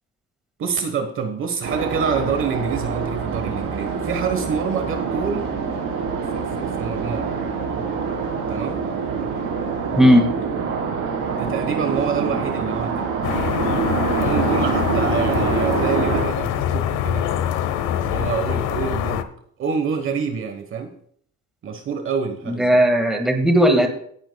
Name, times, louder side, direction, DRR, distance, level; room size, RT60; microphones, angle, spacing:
voice 1, 0.6-5.5 6.3-7.3 8.5-8.8 11.4-13.1 14.1-19.3 19.6-20.9 21.6-22.8, right 6 dB, 40° right, 6 dB, 1.1 m, -27 dB
sound 1, 1.6-16.2, right 5 dB, 75° right, 3.5 m, -25 dB
voice 2, 10.0-10.3 22.5-23.9, equal, ahead, 4 dB, 1.7 m, -16 dB
sound 2, 13.2-19.2, left 10 dB, 75° left, 0.9 m, -24 dB
17.5 x 10.5 x 2.2 m, 0.63 s
cardioid pair, 155°, 31 cm